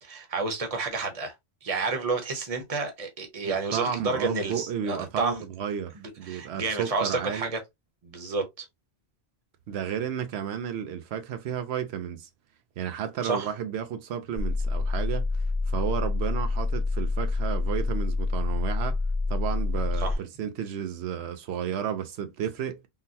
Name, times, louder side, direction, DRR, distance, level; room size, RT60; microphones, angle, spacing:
voice 1, 0.0-1.3 1.6-5.4 5.9-7.6 8.0-8.7 13.2-13.5 20.0-20.2, right 3 dB, 35° right, 0.9 m, -30 dB
voice 2, 3.4-7.5 9.7-12.3 12.8-19.0 19.3-22.9, right 8 dB, 90° right, 0.9 m, -32 dB
sound 1, 14.4-20.1, left 3 dB, 5° left, 0.8 m, -27 dB
3.8 x 2.1 x 2.6 m
omnidirectional pair, 1.1 m